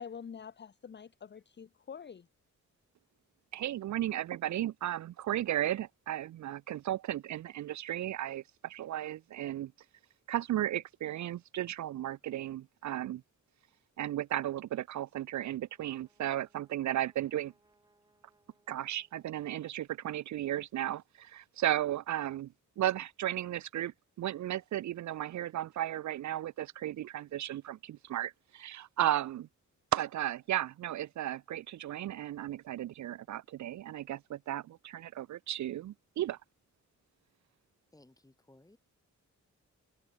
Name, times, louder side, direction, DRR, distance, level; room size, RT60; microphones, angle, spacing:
voice 1, 0.0-2.3, left 7 dB, 35° left, 0.8 m, -46 dB
voice 2, 3.5-9.7 10.3-13.2 14.0-17.5 18.7-22.5 22.8-29.5 29.9-36.4, right 12 dB, 70° right, 0.5 m, -35 dB
Brass instrument, 15.3-19.7, right 2 dB, 15° right, 6.2 m, -72 dB
voice 3, 37.9-38.8, left 2 dB, 10° left, 4.7 m, -60 dB
wide cardioid pair, 140°, 30 cm